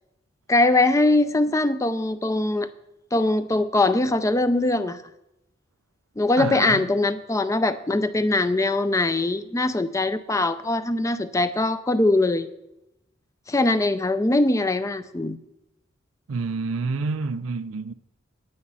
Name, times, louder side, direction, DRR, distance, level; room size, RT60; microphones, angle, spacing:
voice 1, 0.5-2.7 3.1-5.0 6.2-12.5 13.5-15.4, left 2 dB, 15° left, 0.4 m, -22 dB
voice 2, 6.4-6.9 16.3-17.9, right 4 dB, 80° right, 0.5 m, -28 dB
9.6 x 8.7 x 5.5 m
head